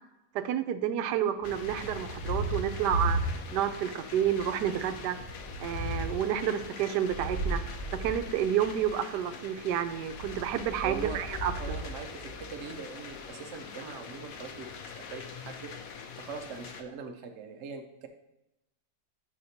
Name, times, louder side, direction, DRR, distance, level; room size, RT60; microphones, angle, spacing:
voice 1, 0.3-3.2 3.5-5.2 5.6-7.6 7.9-11.5, right 10 dB, 85° right, 9 dB, 1.2 m, -30 dB
sound 1, 1.4-16.8, left 6 dB, 65° left, 1.0 m, -45 dB
Thunder, 1.4-3.8 4.1-9.0 10.0-12.7, right 1 dB, 30° right, 2.5 m, -36 dB
voice 2, 10.8-11.2 11.5-18.1, right 5 dB, 60° right, 4 dB, 0.7 m, -42 dB
7.8 x 5.9 x 2.8 m, 0.91 s
omnidirectional pair, 1.8 m